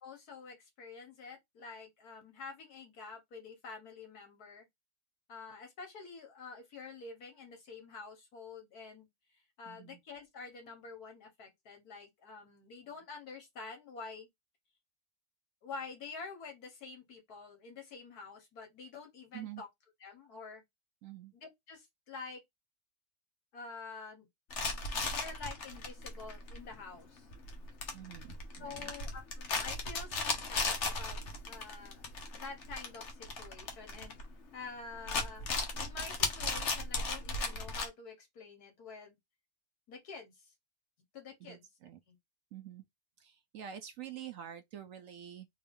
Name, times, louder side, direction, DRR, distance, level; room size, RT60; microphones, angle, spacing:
voice 1, 0.0-4.7 5.3-9.1 9.6-14.3 15.6-19.7 20.0-20.6 21.7-22.4 23.5-24.3 25.0-27.3 28.6-31.2 31.5-32.0 32.3-34.2 34.5-39.2 39.9-40.5 41.1-41.7 42.1-42.2, left 4 dB, 75° left, 1.8 m, -48 dB
voice 2, 9.7-10.0 19.3-19.6 21.0-21.3 27.9-28.9 41.4-42.0 42.5-42.8 43.2-45.5, right 10 dB, 65° right, 0.9 m, -47 dB
sound 1, 24.5-34.6 34.9-37.9, left 3 dB, 55° left, 1.1 m, -37 dB
3.7 x 2.4 x 3.5 m
omnidirectional pair, 1.7 m